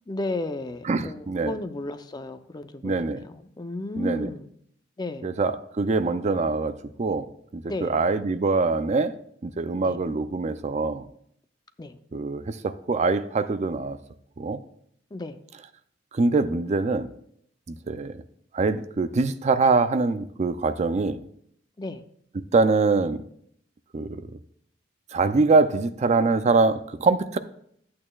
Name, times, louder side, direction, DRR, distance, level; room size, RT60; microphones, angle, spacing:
voice 1, 0.1-4.5 5.0-5.3 7.7-7.9 9.8-10.0 11.8-12.0 15.1-15.4 21.8-22.0, left 2 dB, 25° left, 9 dB, 0.5 m, -33 dB
voice 2, 0.8-1.6 2.8-3.2 4.0-4.3 5.2-7.3 7.5-9.1 9.4-11.1 12.1-14.0 14.4-14.6 16.1-17.1 17.7-18.2 18.5-21.2 22.3-23.2 23.9-24.2 25.1-27.4, right 3 dB, 40° right, 11 dB, 0.4 m, -24 dB
12.5 x 8.6 x 2.3 m, 0.66 s
head